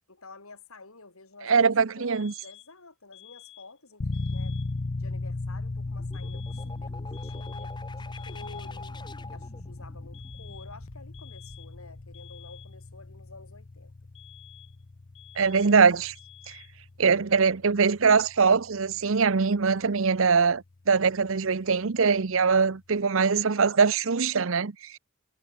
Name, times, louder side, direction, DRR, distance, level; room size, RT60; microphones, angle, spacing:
voice 1, 0.1-1.7 2.0-4.6 5.0-9.0 9.3-13.9, left 3 dB, 80° left, 3.6 m, -50 dB
voice 2, 1.5-2.3 15.4-16.1 16.5-16.6 17.0-25.0, right 5 dB, 70° right, 0.7 m, -22 dB
sound 1, 2.1-2.8 3.1-3.8 4.1-4.8 6.1-6.8 7.1-7.8 8.1-8.8 10.1-10.8 11.1-11.8 12.1-12.8 14.2-14.8 15.2-15.8 16.2-16.8, left 15 dB, 60° left, 5.4 m, -52 dB
sound 2, 4.0-20.7, left 2 dB, 40° left, 0.5 m, -38 dB
sound 3, 5.3-12.9, left 2 dB, 20° left, 4.6 m, -46 dB
head